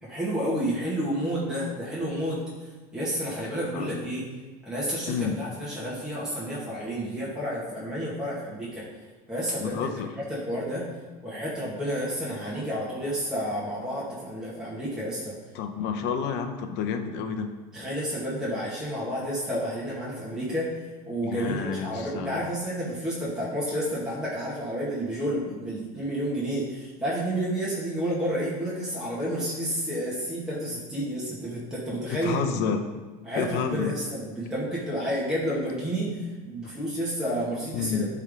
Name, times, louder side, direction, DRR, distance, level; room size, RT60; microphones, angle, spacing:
voice 1, 0.0-2.4 2.9-4.3 4.6-8.8 9.3-9.8 10.1-10.9 11.2-15.3 17.7-20.7 21.1-32.4 33.2-38.1, equal, 5° right, -9 dB, 1.8 m, -30 dB
voice 2, 9.6-10.1 15.5-17.5 21.2-22.4 31.9-32.8 33.3-33.9 37.7-38.1, left 6 dB, 55° left, 7 dB, 0.8 m, -30 dB
10.5 x 3.6 x 3.7 m, 1.3 s
supercardioid pair, 100°, 21 cm